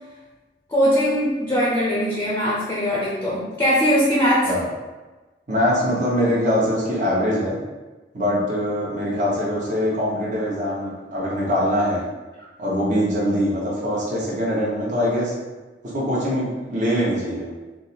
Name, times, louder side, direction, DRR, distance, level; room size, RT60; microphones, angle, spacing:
voice 1, 0.7-4.5, equal, 15° left, -6 dB, 0.6 m, -20 dB
voice 2, 5.5-7.6 8.1-12.0 12.6-15.3 15.8-17.5, equal, 45° right, -6 dB, 0.9 m, -23 dB
3.5 x 2.0 x 4.1 m, 1.2 s
head